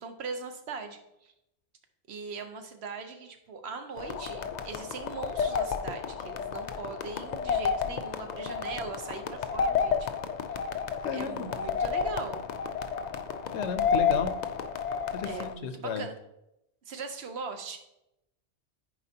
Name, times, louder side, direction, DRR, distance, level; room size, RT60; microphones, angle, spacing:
voice 1, 0.0-1.3 2.1-10.1 11.1-12.4 15.2-16.2 16.8-17.8, right 4 dB, 70° right, 6 dB, 1.1 m, -40 dB
sound 1, 4.0-15.5, left 6 dB, 55° left, 0.5 m, -31 dB
voice 2, 11.0-11.5 13.5-14.4 15.1-16.0, left 6 dB, 80° left, 9 dB, 1.0 m, -33 dB
10.0 x 4.7 x 2.8 m, 0.85 s
omnidirectional pair, 1.1 m